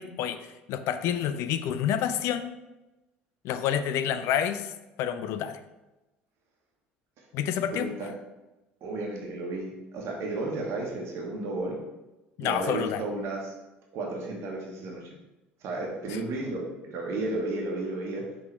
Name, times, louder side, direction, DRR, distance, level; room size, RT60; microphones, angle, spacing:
voice 1, 0.0-2.5 3.4-4.7 5.0-5.6 7.3-7.9 12.4-13.0 16.1-16.2, left 9 dB, 50° left, 11 dB, 0.5 m, -28 dB
voice 2, 7.7-8.1 8.8-11.8 12.4-13.5 13.9-15.1 15.6-18.2, right 2 dB, 50° right, -1 dB, 1.3 m, -33 dB
5.9 x 3.8 x 4.5 m, 1.0 s
figure-of-eight pair, 60°, 6 cm